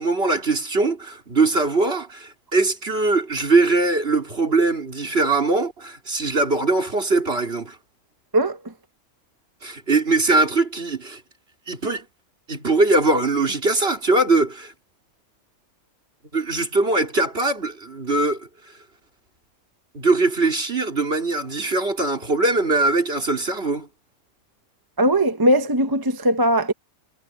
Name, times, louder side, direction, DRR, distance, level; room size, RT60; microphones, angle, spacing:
voice 1, 0.0-7.8 9.6-11.2 11.7-12.1 12.5-14.7 16.3-18.5 19.9-23.9, right 3 dB, 40° right, 4.2 m, -21 dB
voice 2, 25.0-26.7, right 1 dB, 20° right, 0.8 m, -19 dB
omnidirectional pair, 1.5 m